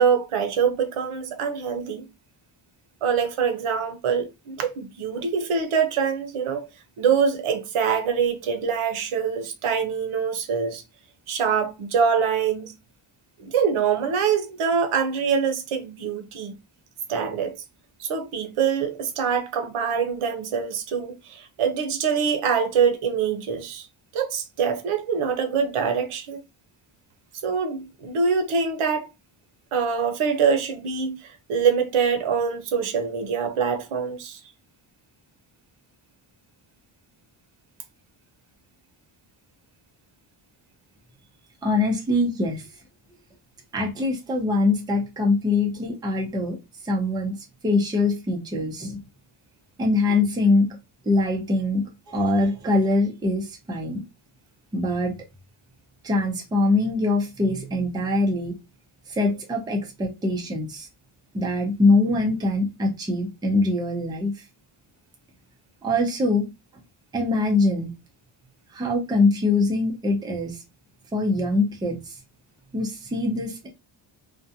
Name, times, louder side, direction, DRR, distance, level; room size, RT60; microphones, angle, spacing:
voice 1, 0.0-2.0 3.0-6.7 7.0-10.8 11.3-12.7 13.4-16.5 17.1-17.6 18.0-23.9 24.1-26.4 27.4-29.1 29.7-34.4, right 6 dB, 85° right, 0.7 m, -24 dB
voice 2, 41.6-42.6 43.7-46.6 46.8-47.4 47.6-49.0 49.8-50.8 51.1-54.0 54.7-55.1 56.0-58.5 59.1-60.9 61.3-64.3 65.8-66.5 67.1-67.9 68.7-70.6 71.1-72.0 72.7-73.7, left 2 dB, 10° right, 0.4 m, -23 dB
2.5 x 2.1 x 2.7 m
wide cardioid pair, 175°, 49 cm